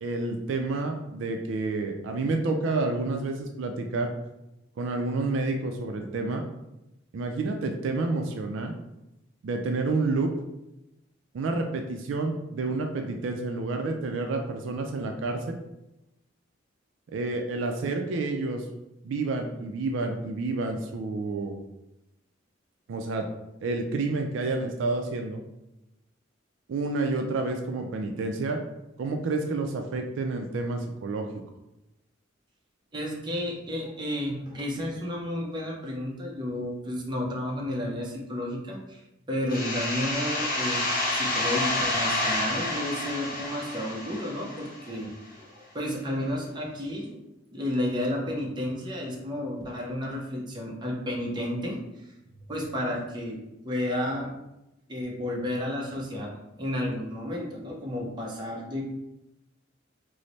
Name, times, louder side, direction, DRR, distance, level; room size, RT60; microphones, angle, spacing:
voice 1, 0.0-4.1 4.8-6.4 7.1-8.8 9.4-10.3 11.3-15.6 17.1-18.6 19.0-21.6 22.9-23.3 23.6-25.4 26.7-28.6 29.0-31.3, right 3 dB, 70° right, 4 dB, 0.3 m, -29 dB
voice 2, 32.9-40.9 41.1-47.2 47.5-52.1 52.5-54.3 54.9-58.8, left 1 dB, 25° right, -2 dB, 0.6 m, -32 dB
sound 1, 39.5-45.0, left 2 dB, 45° left, 0.8 m, -29 dB
3.1 x 2.0 x 3.9 m, 0.92 s
head